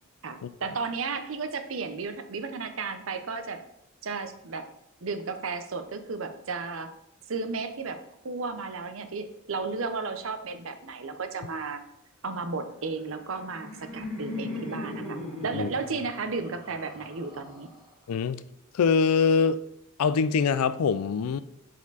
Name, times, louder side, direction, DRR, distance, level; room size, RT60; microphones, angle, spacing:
voice 1, 0.2-3.6 4.0-4.7 5.0-6.9 7.3-11.8 12.2-15.2 15.4-17.7, right 4 dB, 65° right, 0.7 m, -34 dB
Laughter, 13.0-18.0, left 2 dB, ahead, 2.2 m, -39 dB
voice 2, 18.1-18.4 18.7-19.6 20.0-21.4, left 5 dB, 90° left, 0.4 m, -23 dB
7.2 x 4.4 x 4.0 m
head